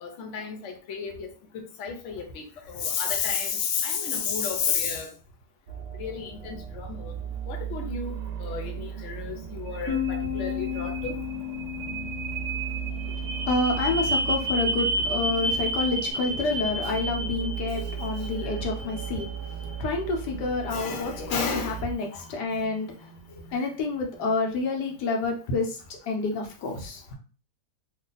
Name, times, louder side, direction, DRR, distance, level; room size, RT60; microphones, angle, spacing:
voice 1, 0.0-1.3 1.5-2.2 2.7-5.1 6.0-7.0 7.5-8.1 8.4-10.0 10.3-11.1 20.7-21.7, left 6 dB, 55° left, 1.0 m, -31 dB
sound 1, 5.7-21.9, right 8 dB, 60° right, 0.9 m, -37 dB
sound 2, 7.3-25.3, right 1 dB, 80° right, 1.1 m, -34 dB
Bass guitar, 9.9-16.1, left 13 dB, 20° left, 0.4 m, -36 dB
voice 2, 13.5-19.3 19.8-22.9 23.5-25.8 26.1-27.0, left 3 dB, 85° left, 1.4 m, -28 dB
3.2 x 2.2 x 3.9 m
omnidirectional pair, 1.7 m